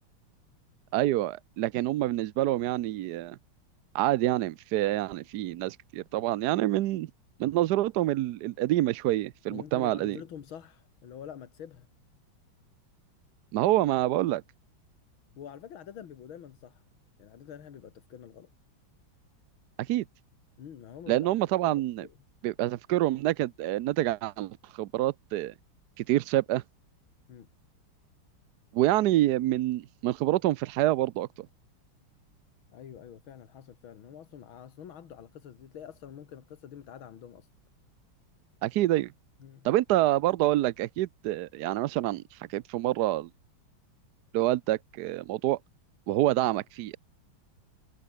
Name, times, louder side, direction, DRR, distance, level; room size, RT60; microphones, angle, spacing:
voice 1, 0.9-3.4 3.9-7.1 7.4-10.2 13.5-14.4 19.8-20.0 21.1-22.1 22.4-25.5 26.0-26.6 28.7-31.3 38.6-39.1 39.6-43.3 44.3-45.6 46.1-47.0, right 15 dB, 70° right, 0.9 m, -27 dB
voice 2, 9.5-11.9 15.4-16.8 17.2-18.5 20.6-21.3 21.6-22.1 27.3-27.5 32.7-37.5 39.4-39.7, left 9 dB, 80° left, 2.4 m, -46 dB
omnidirectional pair, 2.2 m